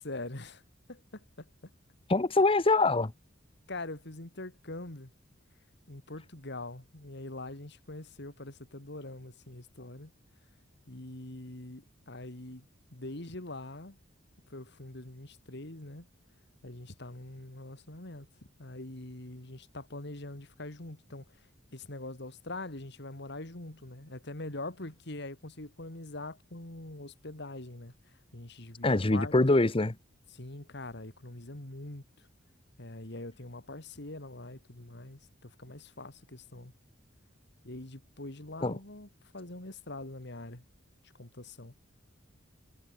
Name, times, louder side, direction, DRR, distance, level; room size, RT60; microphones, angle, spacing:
voice 1, 0.0-0.6 0.9-1.5 3.7-5.1 5.9-10.1 10.9-12.7 12.9-14.0 14.5-16.1 16.6-18.3 18.6-21.2 21.7-27.9 28.3-29.3 30.3-32.0 32.8-36.7 37.6-40.6 41.2-41.7, left 2 dB, 60° left, 2.6 m, -43 dB
voice 2, 2.1-3.1 28.8-29.9 38.6-38.7, left 2 dB, 30° left, 0.9 m, -24 dB
head